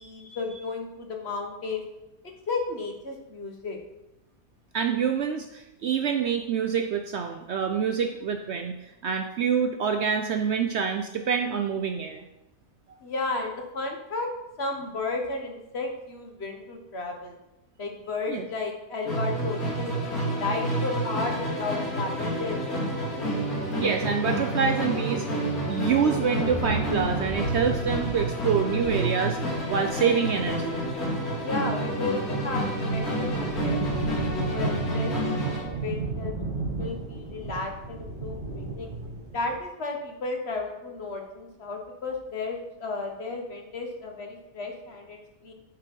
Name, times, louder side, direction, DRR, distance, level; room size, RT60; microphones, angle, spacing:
voice 1, 0.0-1.8 2.5-3.8 13.0-14.3 14.6-17.4 17.8-19.9 20.2-22.9 31.4-33.9 34.5-35.1 35.4-36.3 36.8-38.9 39.3-45.5, left 3 dB, 50° left, 3 dB, 1.3 m, -33 dB
voice 2, 4.7-8.8 9.0-12.2 18.3-18.4 23.8-25.3 25.7-29.4 29.7-30.8, right 6 dB, 65° right, 5 dB, 0.7 m, -26 dB
Musical instrument, 19.0-35.7, right 1 dB, 90° left, 2.9 m, -29 dB
sound 1, 26.5-31.8 32.2-39.6, right 3 dB, 5° left, 1.9 m, -35 dB
8.8 x 4.5 x 5.2 m, 0.94 s
omnidirectional pair, 1.5 m